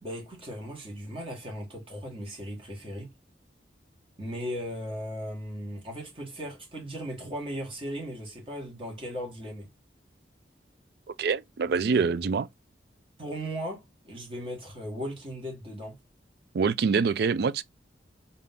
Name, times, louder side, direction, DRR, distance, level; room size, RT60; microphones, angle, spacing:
voice 1, 0.0-3.1 4.2-9.7 11.9-12.1 13.2-16.0, equal, 30° right, 1.8 m, -37 dB
voice 2, 11.2-12.5 16.5-17.6, right 5 dB, 60° right, 0.3 m, -25 dB
3.6 x 2.8 x 3.7 m
head